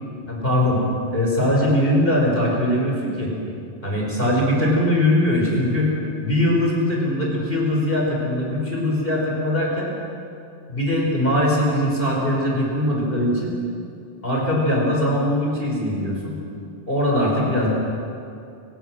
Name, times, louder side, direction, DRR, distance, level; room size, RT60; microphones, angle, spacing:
voice 1, 0.3-0.8 1.1-3.3 3.8-5.9 6.2-9.9 10.7-13.5 14.2-16.4 16.9-17.7, left 1 dB, 55° left, -2 dB, 5.8 m, -21 dB
30.0 x 17.5 x 6.4 m, 2.5 s
omnidirectional pair, 1.2 m